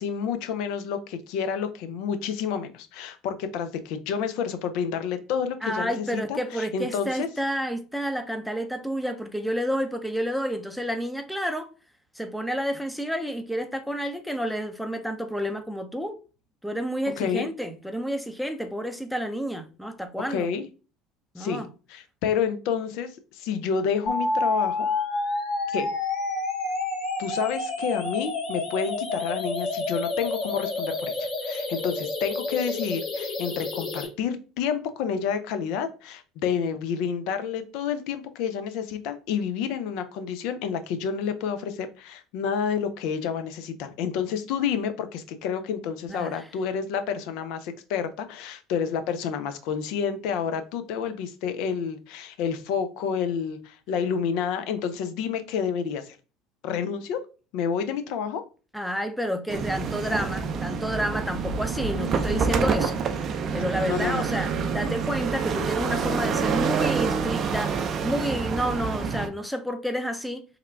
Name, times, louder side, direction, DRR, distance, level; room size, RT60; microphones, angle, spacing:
voice 1, 0.0-7.3 17.2-17.5 20.3-20.6 21.4-21.6 21.9-24.9 25.7-25.9 27.2-56.2 56.6-57.2 57.5-58.4 63.9-64.3, left 7 dB, 65° left, 0.5 m, -29 dB
voice 2, 5.6-11.7 12.1-16.2 16.6-20.5 21.3-21.7 46.1-46.5 58.7-63.0 63.5-70.4, equal, ahead, 0.6 m, -30 dB
sound 1, 24.1-34.1, left 2 dB, 45° left, 1.0 m, -29 dB
sound 2, 59.5-69.3, right 5 dB, 45° right, 0.5 m, -27 dB
3.5 x 2.3 x 3.2 m
hypercardioid pair, 70°, 0 cm